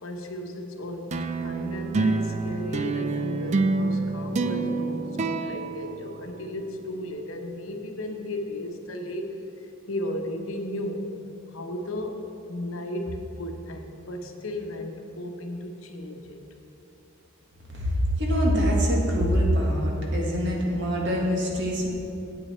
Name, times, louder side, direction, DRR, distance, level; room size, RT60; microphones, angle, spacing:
voice 1, 0.0-9.3 9.6-11.1 11.5-16.4, left 1 dB, 80° left, 4 dB, 0.9 m, -35 dB
sound 1, 1.1-6.7, right 3 dB, 35° right, 0.4 m, -27 dB
voice 2, 17.7-21.9, equal, 60° right, -2 dB, 1.8 m, -24 dB
9.0 x 8.6 x 4.4 m, 3.0 s
head